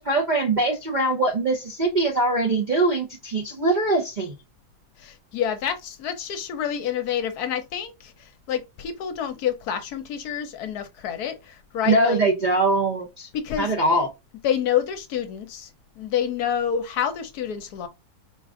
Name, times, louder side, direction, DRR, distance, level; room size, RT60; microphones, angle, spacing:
voice 1, 0.0-4.3 11.8-13.3 13.6-14.1, right 2 dB, 40° right, 0.6 m, -22 dB
voice 2, 5.0-12.2 13.3-13.7 14.4-15.7 16.0-17.9, left 9 dB, 70° left, 1.1 m, -28 dB
4.6 x 2.4 x 3.6 m
omnidirectional pair, 1.8 m